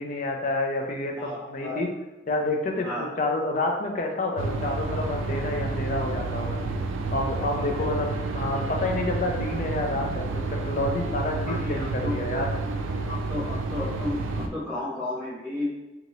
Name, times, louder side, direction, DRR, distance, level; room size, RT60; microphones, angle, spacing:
voice 1, 0.0-1.9 2.3-6.6 7.1-12.5, left 2 dB, 40° left, 1 dB, 0.4 m, -29 dB
voice 2, 1.2-1.8 2.8-3.0 7.5-7.9 11.4-12.1 13.1-15.7, left 2 dB, ahead, -16 dB, 0.9 m, -33 dB
sound 1, 4.4-14.5, right 3 dB, 85° right, 0.3 m, -30 dB
2.7 x 2.5 x 3.0 m, 1.1 s
head